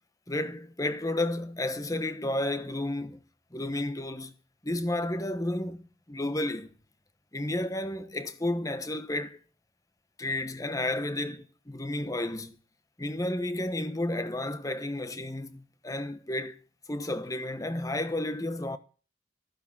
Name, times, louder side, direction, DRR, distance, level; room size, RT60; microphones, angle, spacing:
voice 1, 0.3-3.2 3.5-4.3 4.6-6.7 7.3-9.4 10.2-12.6 13.0-16.6 16.9-18.8, left 1 dB, 20° left, 1.1 m, -32 dB
14.5 x 9.2 x 7.4 m
head